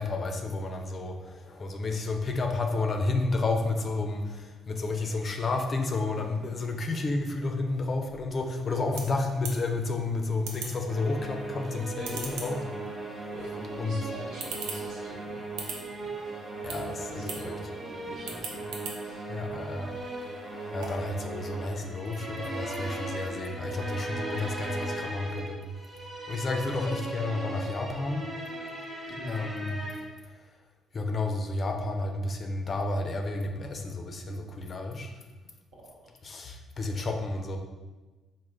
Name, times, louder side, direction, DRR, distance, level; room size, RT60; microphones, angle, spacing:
voice 1, 0.0-12.6 13.8-14.1 16.6-17.5 19.3-20.0 20.7-25.6 26.0-28.3 29.3-29.9 30.9-35.1 36.2-37.6, left 3 dB, 45° left, 3 dB, 0.4 m, -31 dB
sound 1, 8.3-21.1, right 4 dB, 90° right, 0.4 m, -44 dB
sound 2, 10.9-30.1, right 2 dB, 25° right, 0.7 m, -38 dB
voice 2, 11.9-12.6 13.3-16.3 17.1-18.7 19.0-19.3 20.3-20.7 26.4-27.1 29.1-29.4 35.7-36.2, right 1 dB, 70° right, -4 dB, 1.0 m, -45 dB
3.6 x 2.1 x 3.2 m, 1.2 s
supercardioid pair, 70°, 0 cm